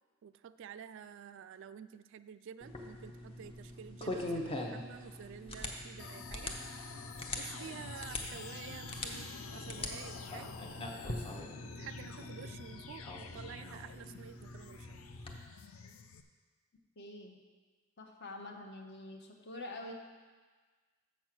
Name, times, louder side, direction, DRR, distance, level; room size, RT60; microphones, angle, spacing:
voice 1, 0.2-6.5 7.3-10.6 11.7-15.0, right 8 dB, 60° right, 13 dB, 0.3 m, -50 dB
sound 1, 2.6-15.4, left 1 dB, 25° left, 0.8 m, -43 dB
sound 2, 6.0-16.2, left 5 dB, 85° left, 0.5 m, -48 dB
voice 2, 17.0-17.4 18.0-19.9, left 2 dB, 55° left, 2 dB, 1.0 m, -46 dB
7.1 x 6.3 x 5.9 m, 1.4 s
head